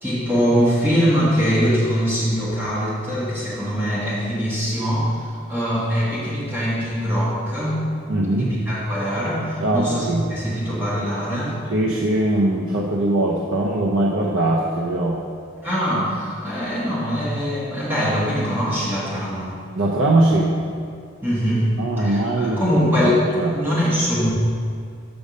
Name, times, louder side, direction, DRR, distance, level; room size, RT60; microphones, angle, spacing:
voice 1, 0.0-7.8 8.3-11.6 15.6-19.5 21.2-21.7 22.0-24.3, equal, 10° right, -9 dB, 1.8 m, -22 dB
voice 2, 8.1-8.5 9.6-10.3 11.7-15.2 19.8-20.5 21.8-22.6 23.0-23.1 23.4-23.5, right 2 dB, 75° right, -3 dB, 0.7 m, -21 dB
7.0 x 5.2 x 5.0 m, 2.2 s
head